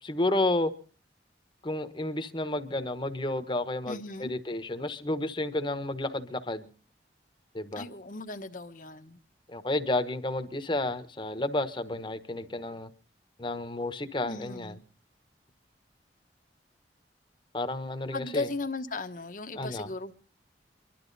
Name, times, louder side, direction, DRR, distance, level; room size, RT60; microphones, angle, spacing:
voice 1, 0.0-0.7 1.6-6.7 7.5-7.9 9.5-12.9 13.4-14.8 17.5-18.5 19.5-19.9, left 2 dB, 25° left, 1.1 m, -31 dB
voice 2, 3.9-4.3 7.8-9.2 14.2-14.8 18.1-20.1, left 3 dB, 45° left, 1.1 m, -36 dB
24.0 x 12.0 x 4.1 m
head